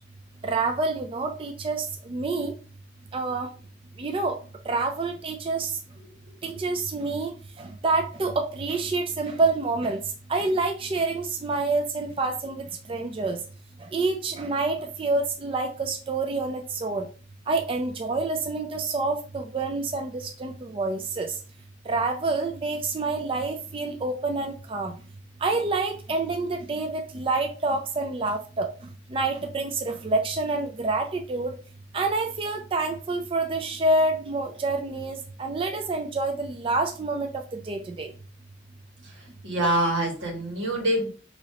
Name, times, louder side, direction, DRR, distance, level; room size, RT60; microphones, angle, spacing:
voice 1, 0.4-2.5 3.1-3.5 4.0-4.4 4.6-5.8 6.4-10.0 10.3-13.4 13.8-17.1 17.5-21.4 21.9-24.9 25.4-28.7 29.1-31.6 31.9-38.1, right 3 dB, 30° right, 4 dB, 0.4 m, -27 dB
voice 2, 39.4-41.1, right 1 dB, 85° right, -1 dB, 1.7 m, -25 dB
5.1 x 3.0 x 2.8 m, 0.37 s
head